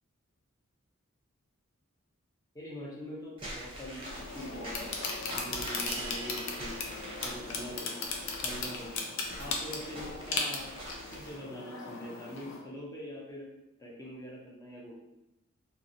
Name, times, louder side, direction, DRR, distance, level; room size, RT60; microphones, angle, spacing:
voice 1, 2.5-5.0 5.2-6.8 7.2-8.1 8.4-9.0 9.4-13.5 13.8-15.0, left 1 dB, 15° left, -3 dB, 0.6 m, -43 dB
Walk footsteps / Squeak, 3.4-11.3, right 1 dB, 25° right, 0.7 m, -44 dB
sound 1, 4.0-12.6, left 4 dB, 60° left, 0.5 m, -37 dB
sound 2, 5.9-8.2, right 4 dB, 65° right, 0.5 m, -45 dB
3.0 x 2.8 x 2.6 m, 0.90 s
head